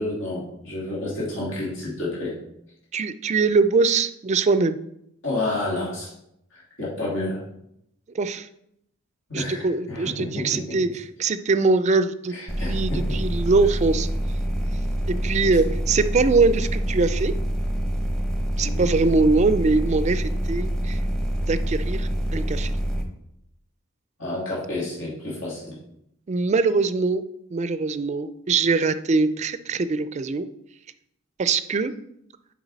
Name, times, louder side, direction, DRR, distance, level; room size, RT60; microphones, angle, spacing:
voice 1, 0.0-2.3 5.2-6.1 6.5-7.4 9.3-10.8 12.3-13.3 15.4-15.6 18.6-18.9 24.2-25.7, left 2 dB, 75° left, -6 dB, 2.4 m, -30 dB
voice 2, 2.9-4.8 8.1-8.5 9.3-12.3 12.6-14.1 15.1-17.3 18.6-21.0 21.5-22.7 26.3-27.2 27.5-30.5 31.4-31.9, right 3 dB, 35° right, 12 dB, 0.4 m, -22 dB
sound 1, 12.5-23.0, right 1 dB, 5° left, 0.8 m, -26 dB
7.0 x 4.8 x 4.0 m, 0.77 s
head